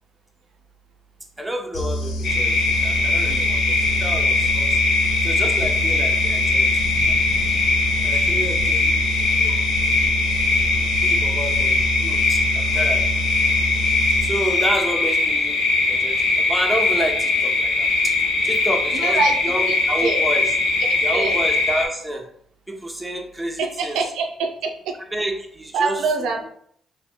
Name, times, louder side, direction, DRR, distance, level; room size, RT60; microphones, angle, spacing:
voice 1, 1.4-4.8 5.2-6.7 7.0-7.1 8.0-9.0 9.3-9.6 11.0-11.8 12.0-13.0 14.2-15.6 15.9-18.2 18.4-19.2 19.4-20.5 21.0-22.2 22.7-24.0 25.1-26.3, right 1 dB, 10° right, 2 dB, 0.7 m, -29 dB
sound 1, 1.7-14.9, equal, 45° left, 0.8 m, -27 dB
sound 2, 2.2-21.9, left 3 dB, 75° left, 0.8 m, -21 dB
voice 2, 3.2-3.7 5.0-5.1 5.6-5.7 19.0-19.4 19.7-20.2 20.8-21.4 23.6-25.0 25.7-26.5, right 4 dB, 85° right, 3 dB, 0.4 m, -25 dB
3.2 x 3.0 x 2.8 m, 0.65 s
supercardioid pair, 65°, 0 cm